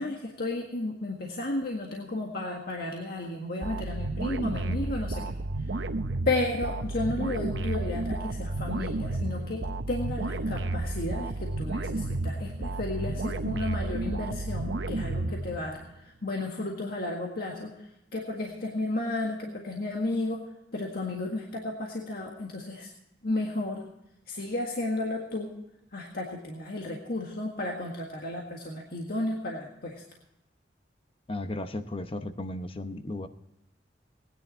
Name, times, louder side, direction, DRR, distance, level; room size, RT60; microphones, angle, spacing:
voice 1, 0.0-5.8 6.2-20.4 20.7-22.9 23.2-23.8 24.3-25.5 25.9-30.0, left 2 dB, 55° left, 0 dB, 1.7 m, -33 dB
sound 1, 3.6-15.9, right 2 dB, 75° right, 0.7 m, -32 dB
voice 2, 31.3-33.3, left 1 dB, 30° left, 9 dB, 0.9 m, -35 dB
18.5 x 10.0 x 4.4 m, 0.87 s
head